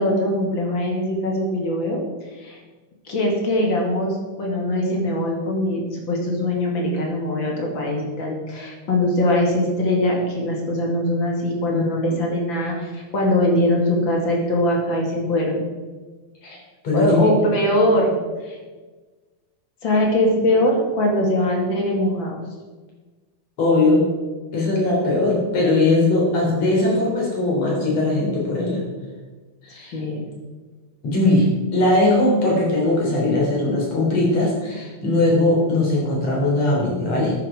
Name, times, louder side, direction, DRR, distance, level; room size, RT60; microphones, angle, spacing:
voice 1, 0.0-2.0 2.4-2.6 3.0-15.7 16.9-18.2 18.4-18.6 19.8-22.4 29.9-30.2, left 1 dB, 40° left, 0 dB, 2.7 m, -21 dB
voice 2, 16.8-17.2 23.6-24.1 24.5-28.8 29.6-30.0 31.0-37.3, left 2 dB, 55° left, -3 dB, 4.8 m, -20 dB
13.0 x 9.4 x 4.9 m, 1.3 s
omnidirectional pair, 3.5 m